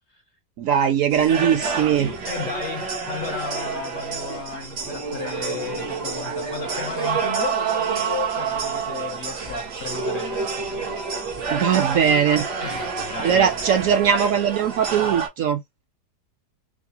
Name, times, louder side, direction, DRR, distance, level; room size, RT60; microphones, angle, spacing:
voice 1, 0.6-2.1 11.5-12.4 13.2-15.6, right 8 dB, 70° right, 0.8 m, -20 dB
sound 1, 1.1-15.3, right 5 dB, 85° right, 1.9 m, -28 dB
voice 2, 2.3-10.9 12.6-13.5, left 6 dB, 65° left, 0.7 m, -34 dB
4.7 x 2.0 x 2.7 m
omnidirectional pair, 1.7 m